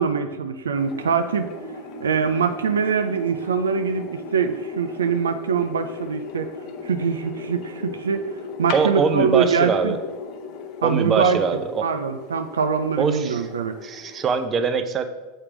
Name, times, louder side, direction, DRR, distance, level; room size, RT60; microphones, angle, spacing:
voice 1, 0.0-1.5 2.0-6.5 6.8-8.3 8.6-10.0 10.8-11.4 11.8-13.8, right 6 dB, 85° right, 7 dB, 0.4 m, -23 dB
sound 1, 0.7-14.5, left 4 dB, 50° left, 0.8 m, -37 dB
voice 2, 8.7-10.0 10.8-11.9 13.0-13.5 13.8-15.0, right 5 dB, 30° right, 8 dB, 0.6 m, -23 dB
7.2 x 3.3 x 5.8 m, 1.2 s
hypercardioid pair, 90°, 0 cm